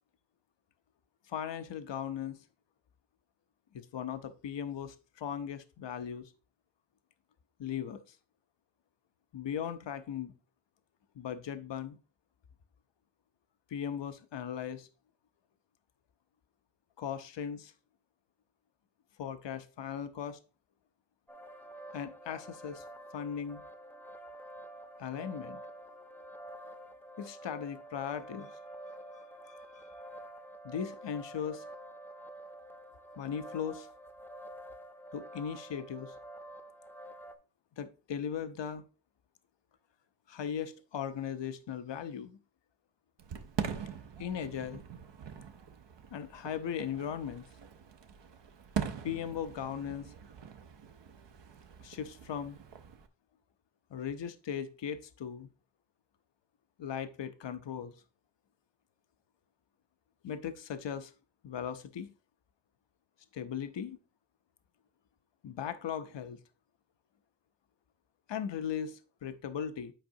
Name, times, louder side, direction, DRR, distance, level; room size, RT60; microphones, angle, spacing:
voice 1, 1.3-2.4 3.7-6.3 7.6-8.2 9.3-10.3 11.2-12.0 13.7-14.9 17.0-17.7 19.2-20.4 21.9-22.8 23.1-23.6 25.0-25.6 27.2-28.6 29.1-29.9 30.6-31.6 33.2-33.9 35.1-36.1 37.8-38.8 40.3-42.4 44.2-44.8 46.1-47.4 49.0-50.1 51.8-52.6 53.9-55.5 56.8-57.9 60.2-61.1 61.4-62.1 63.3-64.0 65.4-66.4 68.3-69.9, left 8 dB, 80° left, 0.6 m, -38 dB
sound 1, 21.3-37.4, right 1 dB, 5° left, 0.5 m, -48 dB
Fireworks, 43.2-53.1, right 7 dB, 75° right, 0.7 m, -42 dB
8.9 x 4.7 x 2.6 m
wide cardioid pair, 90°, 43 cm